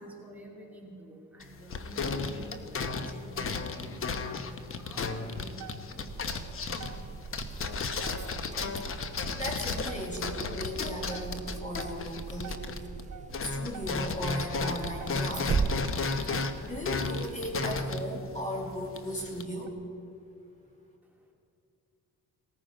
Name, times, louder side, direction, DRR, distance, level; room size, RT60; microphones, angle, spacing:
voice 1, 0.0-6.8 21.0-21.3, right 1 dB, 5° right, -3 dB, 2.6 m, -48 dB
sound 1, 1.4-13.0 13.3-19.4, left 4 dB, 40° left, 1.1 m, -34 dB
sound 2, 5.0-6.1 6.5-6.6 6.8-7.3 7.7-8.6 9.0-9.2 9.6-10.4 10.8-14.2 14.7-14.8 15.0-15.6 16.0-16.9 17.4-17.6 18.0-18.2 18.7-18.9 19.4-19.7, right 7 dB, 60° right, 0.8 m, -47 dB
sound 3, 6.1-17.7, right 5 dB, 25° right, 0.5 m, -39 dB
voice 2, 9.3-12.7 13.4-15.6 16.6-19.7, equal, 20° left, -1 dB, 2.6 m, -37 dB
19.0 x 14.5 x 5.1 m, 2.6 s
cardioid pair, 110°, 32 cm